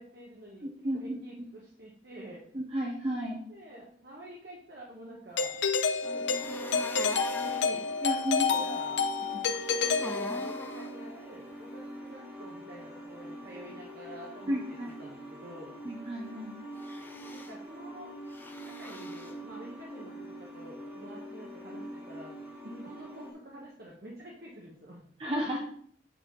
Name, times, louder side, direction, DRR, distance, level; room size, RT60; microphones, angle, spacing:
voice 1, 0.0-0.7 0.9-2.4 3.5-5.6 5.9-7.8 8.4-9.0 9.7-15.7 17.3-18.1 18.6-22.3 22.7-25.1, right 1 dB, 55° right, -4 dB, 1.4 m, -48 dB
voice 2, 0.6-1.2 2.5-3.4 8.0-8.8 14.5-14.9 15.8-16.5 25.2-25.6, equal, 30° right, -1 dB, 0.9 m, -33 dB
Doorbell, 5.4-10.8, left 5 dB, 75° left, 0.7 m, -29 dB
sound 1, 6.0-23.3, equal, 10° right, 1.7 m, -45 dB
sound 2, 6.3-7.7 9.5-10.9 16.8-17.5 18.3-19.3, left 1 dB, 10° left, 0.5 m, -42 dB
8.3 x 4.3 x 5.2 m, 0.62 s
head